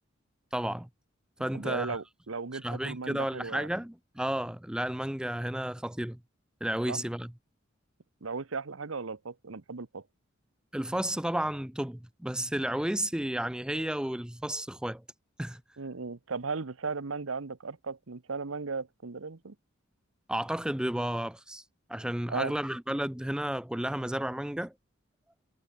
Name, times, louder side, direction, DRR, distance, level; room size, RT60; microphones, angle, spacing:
voice 1, 0.5-0.9 1.4-2.0 2.6-6.2 6.6-7.3 10.7-15.0 15.4-15.6 20.3-21.6 21.9-24.7, right 1 dB, 5° right, 0.5 m, -32 dB
voice 2, 1.5-3.7 6.9-7.0 8.2-10.0 15.8-19.5 22.3-22.5, right 4 dB, 85° right, 1.0 m, -36 dB
head